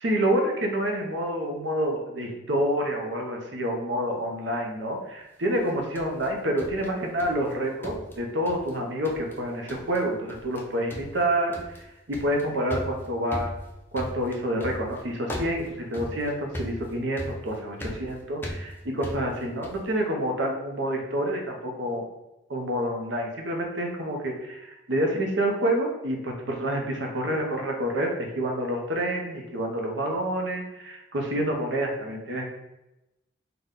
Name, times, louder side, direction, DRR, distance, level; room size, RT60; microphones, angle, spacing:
voice 1, 0.0-11.6 12.1-13.5 13.9-15.6 15.9-22.0 22.5-32.5, right 1 dB, 75° right, 1 dB, 0.7 m, -28 dB
sound 1, 5.6-7.5 7.8-8.8 9.0-9.4 9.7-10.0 10.3-10.6 10.9-19.9, equal, 10° left, 0.4 m, -38 dB
3.9 x 2.2 x 3.6 m, 0.97 s
head